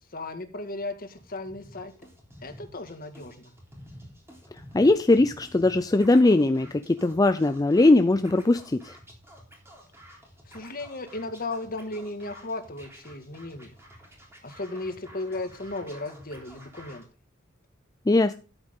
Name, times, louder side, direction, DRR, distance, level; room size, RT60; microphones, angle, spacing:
voice 1, 0.1-1.9 2.4-3.5 10.5-13.8 14.4-17.0, left 2 dB, 45° left, 6 dB, 1.9 m, -35 dB
Scratching (performance technique), 1.1-17.0, equal, 10° right, 3.6 m, -50 dB
voice 2, 4.7-9.0 18.1-18.3, left 2 dB, 20° left, 10 dB, 0.4 m, -20 dB
13.0 x 8.0 x 3.7 m, 0.36 s
head